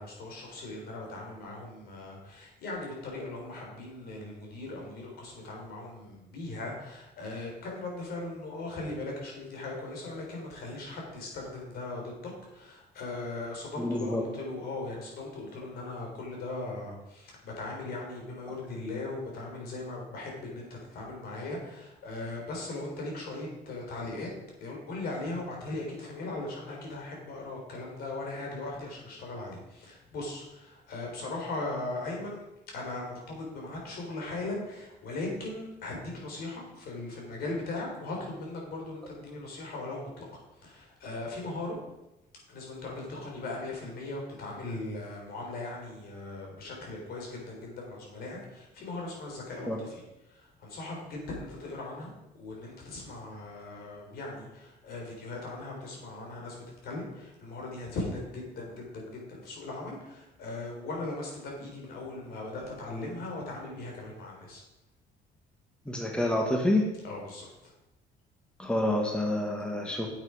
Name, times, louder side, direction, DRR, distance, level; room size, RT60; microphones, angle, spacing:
voice 1, 0.0-24.3 24.6-32.4 32.7-40.3 40.6-41.8 42.5-49.9 50.3-64.6 67.0-67.7, left 2 dB, 65° left, -1 dB, 3.9 m, -39 dB
voice 2, 13.8-14.2 49.7-49.8 65.8-66.9 68.6-70.1, left 1 dB, 5° left, 1 dB, 1.6 m, -28 dB
8.8 x 8.3 x 5.0 m, 0.94 s
cardioid pair, 110°, 17 cm